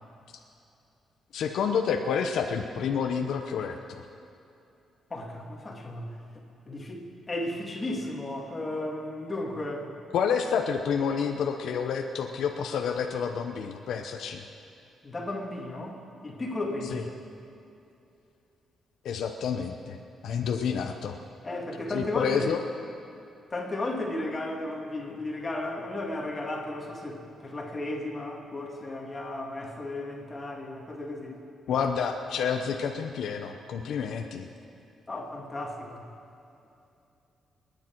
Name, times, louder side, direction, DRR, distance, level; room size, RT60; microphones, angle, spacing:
voice 1, 1.3-4.1 10.1-14.4 16.9-17.0 19.0-20.0 20.2-21.2 21.9-22.6 31.7-34.5, left 6 dB, 70° left, 4 dB, 0.8 m, -29 dB
voice 2, 5.1-6.1 6.3-9.9 15.0-16.0 16.2-17.1 21.4-22.6 23.5-31.4 35.1-36.0, left 2 dB, 20° left, -2 dB, 2.1 m, -34 dB
26.0 x 10.0 x 4.6 m, 2.7 s
cardioid pair, 170°, 0 cm